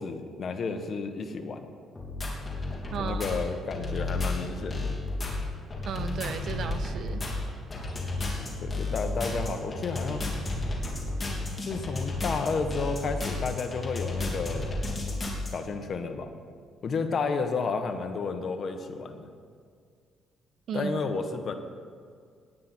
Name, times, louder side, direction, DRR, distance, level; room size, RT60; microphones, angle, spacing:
voice 1, 0.0-1.7 3.0-4.9 8.6-10.2 11.6-14.8 15.5-16.3 16.8-19.3 20.7-21.5, left 4 dB, 45° left, 6 dB, 1.3 m, -31 dB
sound 1, 2.0-15.5, left 2 dB, 25° left, 3.0 m, -32 dB
voice 2, 2.9-3.4 5.8-7.2 20.7-20.9, right 6 dB, 60° right, 9 dB, 0.9 m, -34 dB
18.0 x 9.6 x 4.5 m, 2.1 s
cardioid pair, 105°, 0 cm